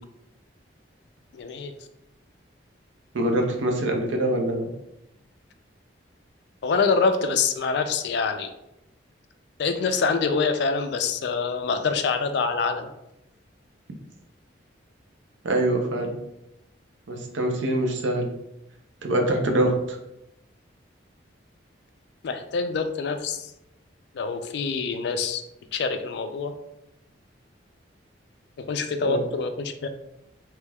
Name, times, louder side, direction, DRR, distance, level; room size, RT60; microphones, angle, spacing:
voice 1, 1.3-1.7 6.6-8.5 9.6-12.9 22.2-23.5 24.1-25.4 25.7-26.5 28.6-29.9, left 4 dB, 65° left, 8 dB, 0.3 m, -25 dB
voice 2, 3.1-4.7 15.4-16.2 17.1-18.3 19.0-20.0 29.0-29.3, right 1 dB, 80° right, 2 dB, 0.6 m, -24 dB
3.3 x 3.1 x 2.2 m, 0.85 s
head